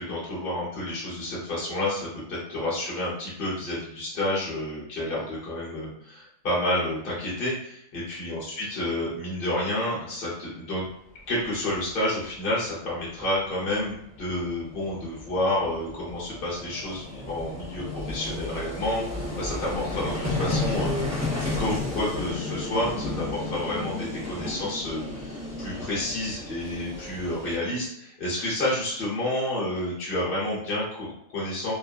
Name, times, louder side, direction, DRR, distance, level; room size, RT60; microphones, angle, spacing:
voice 1, 0.0-10.9 11.3-21.1 21.6-31.7, left 1 dB, 45° left, -7 dB, 1.0 m, -30 dB
Vehicle, 11.5-11.6 11.7-11.9 13.9-14.0 14.2-27.6, left 2 dB, 15° right, 0.8 m, -33 dB
3.0 x 2.0 x 2.5 m, 0.74 s
omnidirectional pair, 1.4 m